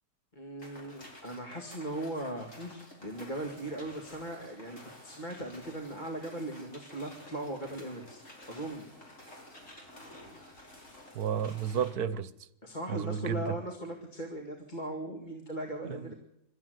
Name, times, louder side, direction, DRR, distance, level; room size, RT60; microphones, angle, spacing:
voice 1, 0.4-8.2 8.5-8.9 10.8-10.9 12.6-16.1, right 1 dB, 30° left, 2.3 m, -38 dB
sound 1, 0.6-11.9, left 1 dB, 50° left, 5.4 m, -51 dB
voice 2, 11.1-12.3 12.9-13.6 15.9-16.1, right 8 dB, 75° right, 1.4 m, -32 dB
23.5 x 13.0 x 9.5 m
omnidirectional pair, 1.7 m